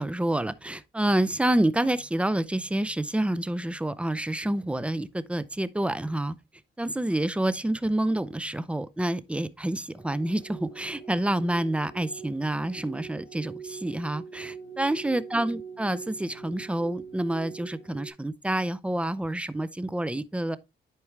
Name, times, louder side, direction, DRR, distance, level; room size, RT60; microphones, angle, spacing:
voice 1, 0.0-6.3 6.8-20.6, right 1 dB, 5° right, 0.5 m, -28 dB
sound 1, 9.9-18.1, right 6 dB, 75° left, 2.1 m, -43 dB
10.5 x 4.6 x 3.2 m
cardioid pair, 90°, 20 cm